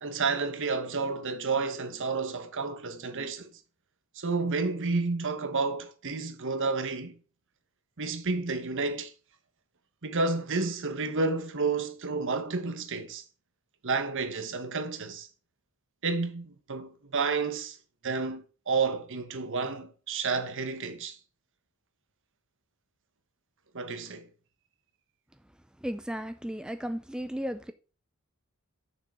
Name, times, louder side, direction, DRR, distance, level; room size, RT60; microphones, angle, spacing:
voice 1, 0.0-3.5 4.2-7.1 8.0-9.1 10.0-13.2 13.8-15.3 16.0-17.8 18.0-21.2 23.7-24.3, right 4 dB, 60° right, 1.1 m, -30 dB
voice 2, 25.8-27.7, equal, 5° right, 0.4 m, -34 dB
7.1 x 6.8 x 5.3 m
head